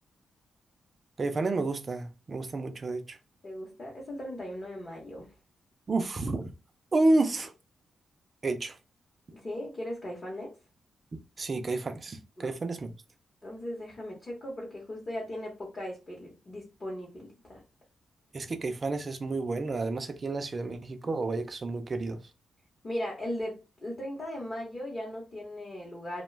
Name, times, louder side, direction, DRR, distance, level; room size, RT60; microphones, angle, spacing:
voice 1, 1.2-3.2 5.9-6.5 6.9-7.5 8.4-8.8 11.4-12.9 18.3-22.2, right 2 dB, 30° right, 0.4 m, -30 dB
voice 2, 3.4-5.3 9.3-10.5 12.4-12.5 13.4-17.6 22.8-23.5 23.8-26.2, left 1 dB, 30° left, 0.8 m, -38 dB
2.3 x 2.1 x 3.1 m
wide cardioid pair, 140°, 0 cm